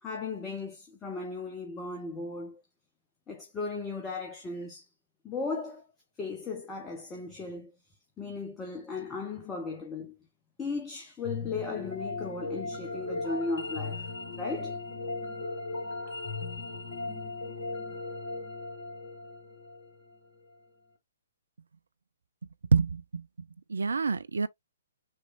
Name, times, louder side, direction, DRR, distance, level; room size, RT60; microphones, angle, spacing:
voice 1, 0.0-2.6 3.3-4.9 5.2-5.8 6.2-7.8 8.2-10.2 10.6-14.8, left 3 dB, 15° left, 0.8 m, -36 dB
sound 1, 11.2-20.4, left 3 dB, 50° left, 1.6 m, -37 dB
voice 2, 22.7-23.3 23.7-24.5, right 5 dB, 65° right, 0.4 m, -26 dB
6.5 x 3.0 x 2.4 m
figure-of-eight pair, 125°, 0 cm